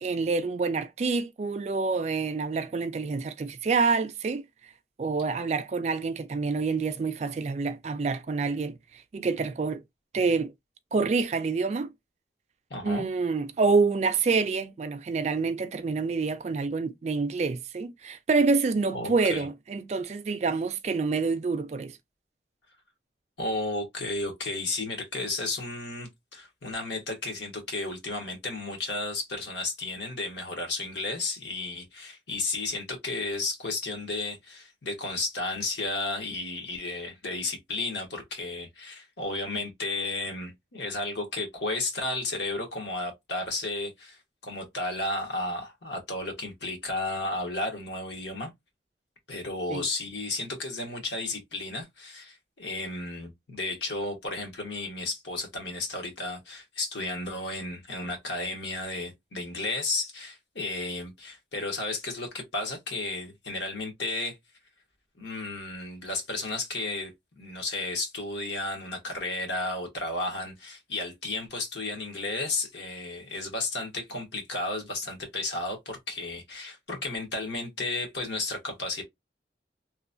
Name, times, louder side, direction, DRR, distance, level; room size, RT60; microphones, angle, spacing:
voice 1, 0.0-4.4 5.0-9.8 10.1-10.5 10.9-11.9 12.8-21.9 49.7-49.8, right 4 dB, 40° right, 0.3 m, -27 dB
voice 2, 12.7-13.1 18.9-19.5 23.4-48.5 49.3-64.4 65.2-79.0, left 2 dB, 80° left, 1.2 m, -33 dB
3.0 x 2.1 x 2.5 m
head